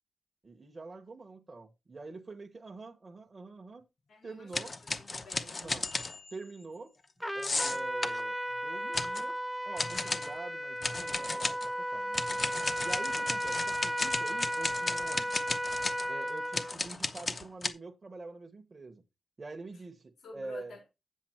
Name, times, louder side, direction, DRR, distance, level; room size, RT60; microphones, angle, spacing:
voice 1, 0.4-3.8 4.2-4.7 5.6-5.9 6.3-6.9 7.3-8.4 8.6-9.4 9.7-11.6 11.9-12.2 12.8-15.3 16.1-19.0 19.4-20.7, right 3 dB, 25° right, 1.0 m, -45 dB
voice 2, 4.1-4.7 5.0-5.9 19.7-19.8 20.2-20.9, left 2 dB, 85° left, 3.8 m, -51 dB
sound 1, 4.5-6.3 7.4-8.2 8.9-9.3 9.8-10.3 10.8-11.7 12.1-17.7, left 3 dB, 30° left, 0.8 m, -34 dB
Trumpet, 7.2-16.8, equal, ahead, 0.4 m, -35 dB
8.6 x 7.4 x 4.4 m
wide cardioid pair, 160°, 0 cm